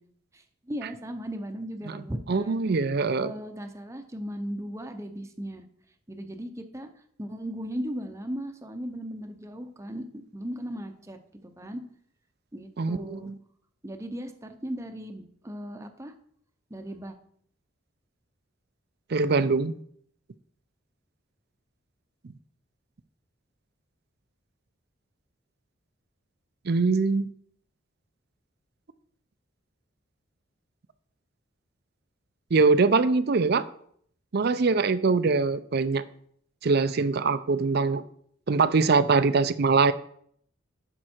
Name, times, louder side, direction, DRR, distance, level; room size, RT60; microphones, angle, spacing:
voice 1, 0.3-2.6 3.1-5.6 6.1-6.9 7.2-10.0 10.3-11.8 12.5-13.3 13.8-16.1 16.7-17.1, equal, 15° right, 0.7 m, -37 dB
voice 2, 2.3-3.3 12.8-13.3 19.1-19.8 26.7-27.3 32.5-33.6 34.3-36.0 36.6-38.0 38.5-39.9, right 4 dB, 55° right, 0.5 m, -23 dB
11.0 x 5.4 x 4.4 m
head